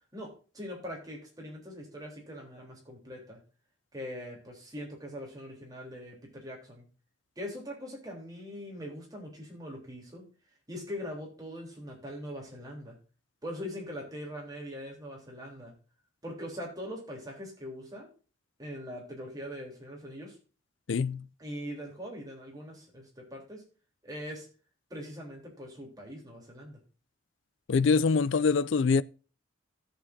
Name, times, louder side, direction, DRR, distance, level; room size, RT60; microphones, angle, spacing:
voice 1, 0.1-3.4 3.9-6.8 7.4-10.2 10.7-13.0 13.4-15.7 16.2-18.1 18.6-20.4 21.4-23.7 24.0-24.5 24.9-26.8, equal, 20° right, 3.7 m, -42 dB
voice 2, 20.9-21.2 27.7-29.0, left 4 dB, 70° left, 0.4 m, -24 dB
16.5 x 7.4 x 2.7 m
head